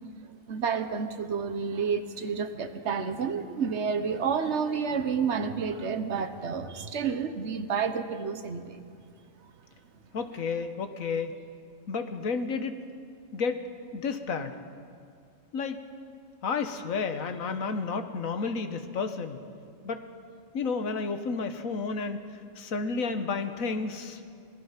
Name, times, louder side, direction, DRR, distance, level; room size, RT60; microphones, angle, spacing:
voice 1, 0.5-8.8, right 6 dB, 55° right, 10 dB, 1.3 m, -30 dB
voice 2, 10.1-11.4 11.9-12.8 13.3-13.6 13.9-14.6 15.5-15.8 16.4-19.4 19.8-20.0 20.5-22.2 22.6-24.2, left 4 dB, 85° left, 8 dB, 1.6 m, -31 dB
26.0 x 18.5 x 5.8 m, 2.3 s
omnidirectional pair, 1.4 m